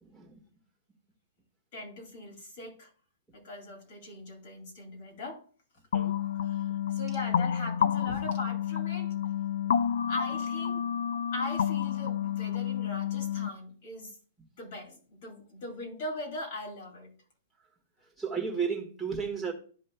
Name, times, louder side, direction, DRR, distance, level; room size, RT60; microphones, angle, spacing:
voice 1, 0.0-0.4 5.9-6.2 8.1-8.2 18.2-19.5, right 6 dB, ahead, 1.5 m, -33 dB
voice 2, 1.7-2.9 3.3-5.4 6.4-9.1 10.1-10.8 11.3-14.2 14.6-17.1, left 2 dB, 40° left, 2.5 m, -40 dB
sound 1, 5.9-13.5, left 9 dB, 60° left, 0.4 m, -30 dB
13.5 x 5.3 x 2.2 m
hypercardioid pair, 175°, 0 cm